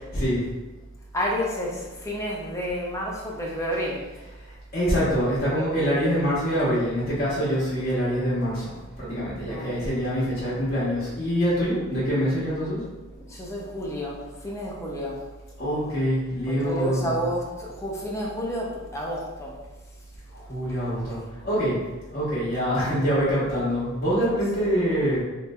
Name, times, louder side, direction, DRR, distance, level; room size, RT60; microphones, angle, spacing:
voice 1, 0.1-0.4 4.7-8.7 9.0-12.8 15.6-17.2 20.5-21.2 21.4-21.8 22.1-25.2, equal, 40° left, -10 dB, 1.0 m, -25 dB
voice 2, 1.1-4.0 9.5-9.8 13.2-15.2 16.5-19.5 24.6-24.7, equal, 15° left, -3 dB, 0.5 m, -30 dB
3.1 x 2.8 x 2.3 m, 1.2 s
head